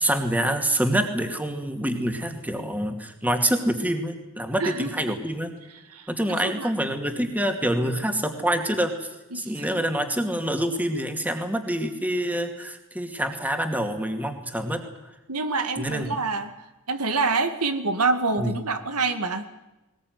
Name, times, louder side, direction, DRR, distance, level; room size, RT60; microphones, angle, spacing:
voice 1, 0.0-5.5 6.1-8.9 9.3-14.8 15.8-16.1 18.4-18.5, right 1 dB, 5° right, 5 dB, 2.4 m, -26 dB
voice 2, 4.6-5.2 5.9-6.7 9.3-9.7 15.3-16.5 16.9-19.5, right 3 dB, 90° right, 8 dB, 2.2 m, -27 dB
20.5 x 20.5 x 9.5 m, 1.0 s
head